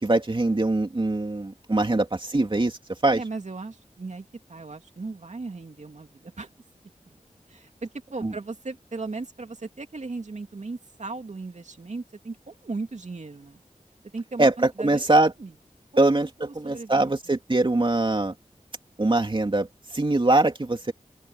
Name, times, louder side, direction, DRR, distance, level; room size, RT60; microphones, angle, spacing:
voice 1, 0.0-2.8 3.0-3.2 8.2-8.3 14.4-15.3 16.0-18.3 19.0-20.9, right 2 dB, 40° right, 3.0 m, -22 dB
voice 2, 3.1-6.5 7.1-7.2 7.5-13.6 14.1-15.5 16.4-17.1, right 3 dB, 60° right, 2.8 m, -37 dB
open air
wide cardioid pair, 70°, 13 cm